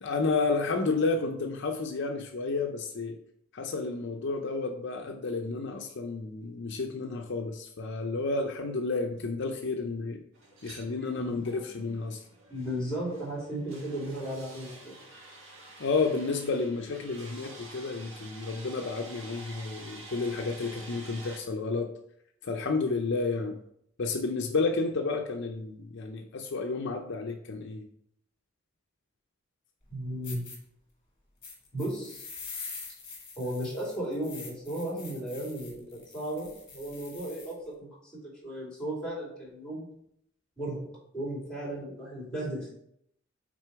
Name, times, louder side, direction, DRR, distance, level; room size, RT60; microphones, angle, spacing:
voice 1, 0.0-3.2 3.5-10.2 10.6-12.2 15.8-21.9 22.4-23.6 24.0-27.9, left 3 dB, 60° left, 4 dB, 0.6 m, -31 dB
sound 1, 10.3-21.4, right 2 dB, 75° right, 1.7 m, -49 dB
voice 2, 11.2-11.6 12.5-15.0 29.9-30.5 31.7-32.3 33.4-38.1 38.4-39.9 40.6-42.7, right 1 dB, 5° left, -4 dB, 2.9 m, -35 dB
sound 2, 29.8-29.9 30.2-30.6 31.4-37.5, left 4 dB, 30° left, 2.0 m, -45 dB
6.0 x 4.2 x 4.7 m, 0.71 s
head